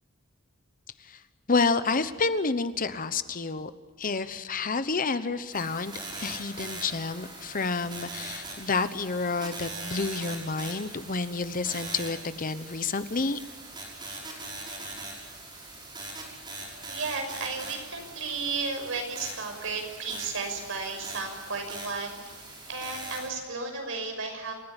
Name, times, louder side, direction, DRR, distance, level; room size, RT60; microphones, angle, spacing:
voice 1, 1.5-3.7 4.0-13.4, left 4 dB, 40° left, 12 dB, 1.0 m, -29 dB
sound 1, 5.5-23.3, right 2 dB, 20° right, 6.1 m, -41 dB
voice 2, 16.9-22.2 22.7-24.5, right 4 dB, 70° right, 4 dB, 6.2 m, -33 dB
28.0 x 15.0 x 9.9 m, 1.4 s
head